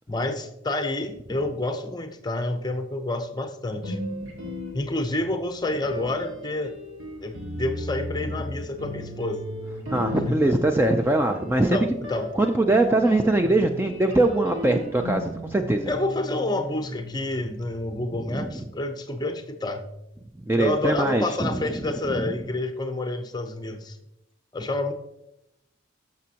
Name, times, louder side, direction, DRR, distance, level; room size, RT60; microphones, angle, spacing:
voice 1, 0.1-4.0 4.7-6.7 7.2-9.5 10.3-10.6 11.7-12.3 15.9-19.9 20.6-24.0 24.5-24.9, left 2 dB, 20° left, 7 dB, 0.7 m, -29 dB
sound 1, 3.8-5.3 5.8-18.0, equal, 80° right, 2.0 m, -36 dB
voice 2, 9.9-11.8 12.4-15.9 18.3-18.5 20.5-21.6 22.1-22.3, right 2 dB, 10° right, 5 dB, 0.4 m, -22 dB
13.5 x 6.0 x 2.9 m, 0.85 s
head